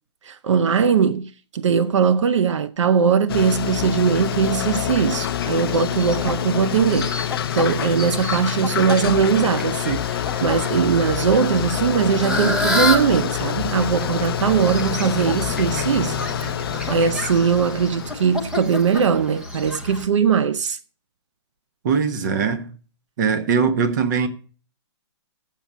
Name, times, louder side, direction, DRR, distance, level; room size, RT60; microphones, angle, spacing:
voice 1, 0.2-16.2 16.9-20.8, right 6 dB, 80° right, 0.6 m, -20 dB
sound 1, 3.3-18.5, left 10 dB, 50° left, 0.6 m, -27 dB
Fowl, 3.7-20.0, left 1 dB, 5° right, 0.7 m, -31 dB
voice 2, 21.8-22.7 23.2-24.3, right 6 dB, 40° right, 1.1 m, -21 dB
7.5 x 6.8 x 8.2 m
hypercardioid pair, 170°, 15 cm